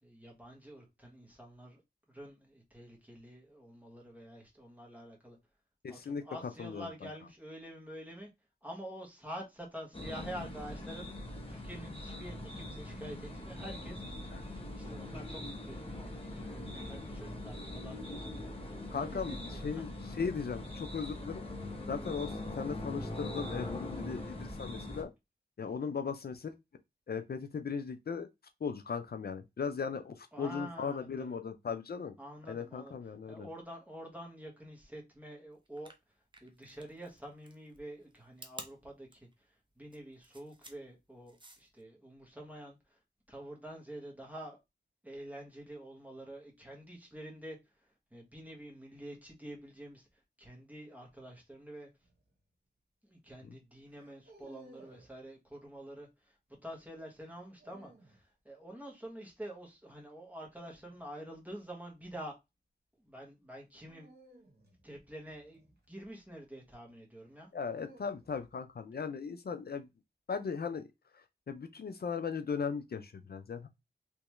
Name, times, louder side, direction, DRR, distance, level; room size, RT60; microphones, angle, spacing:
voice 1, 0.0-1.8 2.1-5.4 5.9-8.3 8.6-14.0 14.8-19.8 25.8-25.9 30.3-31.3 32.2-32.9 33.3-35.9 36.4-39.3 39.8-43.0 43.3-44.6 45.0-47.6 48.1-50.1 50.4-51.9 53.0-56.3 56.6-62.3 63.0-64.1 64.8-67.5, equal, 10° right, 1.4 m, -47 dB
voice 2, 5.8-6.2 6.6-6.9 14.3-14.4 18.9-21.4 21.9-25.1 25.6-26.5 27.1-28.3 28.6-32.2 32.5-33.5 53.4-53.6 67.5-69.9 70.3-70.9 71.1-73.7, left 5 dB, 65° left, 0.4 m, -38 dB
sound 1, 9.9-25.0, left 1 dB, 30° left, 1.0 m, -42 dB
sound 2, 35.6-41.8, right 2 dB, 25° right, 0.7 m, -52 dB
sound 3, 52.0-52.3 53.9-55.1 57.2-58.2 60.7-61.0 63.8-66.2 67.3-68.6, right 1 dB, 70° right, 1.2 m, -59 dB
3.4 x 3.0 x 3.1 m
wide cardioid pair, 80°, 18 cm